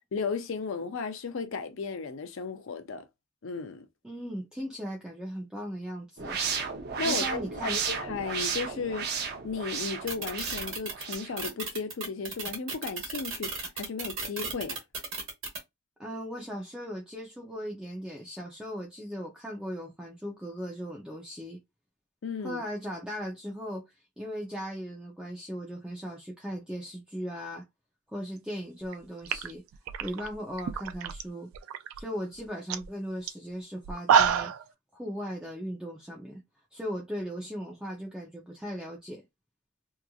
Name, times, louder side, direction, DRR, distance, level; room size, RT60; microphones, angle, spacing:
voice 1, 0.1-3.0 3.4-3.9 7.0-9.1 9.4-14.8 22.2-22.6, left 5 dB, 70° left, 0.5 m, -35 dB
voice 2, 4.0-6.4 7.0-7.8 16.0-21.6 22.4-23.9 24.2-27.6 28.1-29.6 30.0-31.5 31.9-34.5 34.9-36.4 36.7-39.2, equal, 5° right, 0.5 m, -38 dB
sound 1, 6.2-11.3, right 6 dB, 55° right, 0.6 m, -33 dB
sound 2, 10.1-15.6, right 4 dB, 70° right, 1.2 m, -35 dB
sound 3, 28.8-28.9 29.2-31.2 31.5-32.0 32.4-32.5 32.7-32.9 33.3-33.4 33.8-34.6, right 7 dB, 85° right, 0.3 m, -27 dB
2.9 x 2.5 x 2.3 m
head